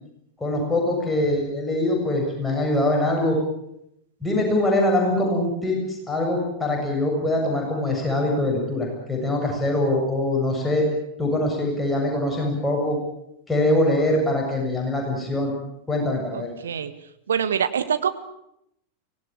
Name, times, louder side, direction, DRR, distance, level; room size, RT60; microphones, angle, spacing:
voice 1, 0.4-3.4 4.2-10.9 11.2-13.0 13.5-15.5 15.9-16.5, left 1 dB, 10° left, 0 dB, 7.4 m, -23 dB
voice 2, 16.3-16.9 17.3-18.1, right 8 dB, 65° right, 10 dB, 1.8 m, -24 dB
25.0 x 18.5 x 9.0 m, 0.79 s
figure-of-eight pair, 90°, 0 cm